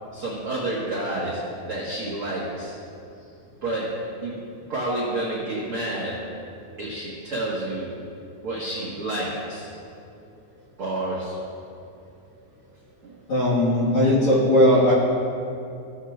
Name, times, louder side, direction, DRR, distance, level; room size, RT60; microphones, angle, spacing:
voice 1, 0.1-2.8 3.6-4.4 4.7-6.3 6.8-7.9 8.4-9.7 10.8-11.5 13.0-13.1, right 1 dB, 80° right, -7 dB, 1.2 m, -29 dB
voice 2, 13.3-14.9, left 1 dB, 55° left, -7 dB, 1.7 m, -18 dB
17.5 x 8.1 x 2.4 m, 2.6 s
omnidirectional pair, 4.8 m